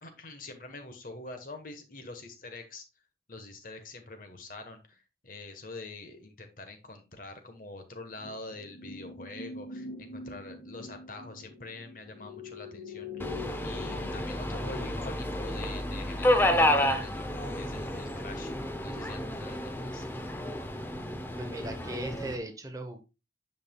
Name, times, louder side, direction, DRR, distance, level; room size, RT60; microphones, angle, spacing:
voice 1, 0.0-2.8 3.3-13.3 13.6-18.5 18.8-20.1, left 2 dB, 50° left, 1.2 m, -45 dB
sound 1, 8.2-18.5 18.8-19.0, left 3 dB, 85° left, 2.6 m, -46 dB
Subway metro underground, 13.2-22.4, left 1 dB, 10° left, 0.6 m, -30 dB
voice 2, 21.4-23.0, right 1 dB, 20° right, 0.8 m, -38 dB
9.8 x 5.6 x 2.2 m
head